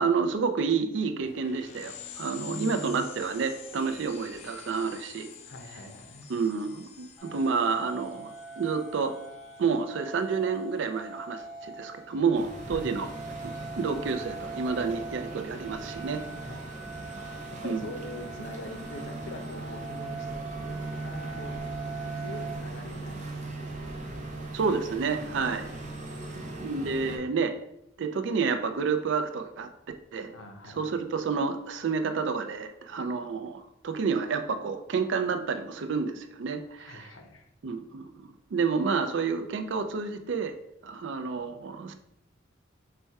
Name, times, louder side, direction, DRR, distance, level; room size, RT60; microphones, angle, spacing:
voice 1, 0.0-5.3 6.3-8.3 8.6-9.2 9.6-13.1 13.4-16.2 17.6-17.9 24.5-25.7 26.3-27.5 28.0-29.7 30.1-30.3 30.8-37.1 37.6-40.5 40.8-41.9, right 5 dB, 65° right, 7 dB, 0.4 m, -29 dB
sound 1, 1.2-11.3, left 7 dB, 35° left, 0.4 m, -48 dB
voice 2, 2.3-3.1 5.5-6.3 12.7-13.0 16.4-16.9 17.5-21.8 22.2-23.7 26.4-26.5 30.3-30.9 36.8-37.4, left 1 dB, 85° left, 5 dB, 0.7 m, -43 dB
sound 2, 7.2-22.6, right 4 dB, 15° left, 1.2 m, -42 dB
sound 3, 12.3-27.2, right 2 dB, 40° right, 0.7 m, -39 dB
4.2 x 2.2 x 4.6 m, 0.79 s
head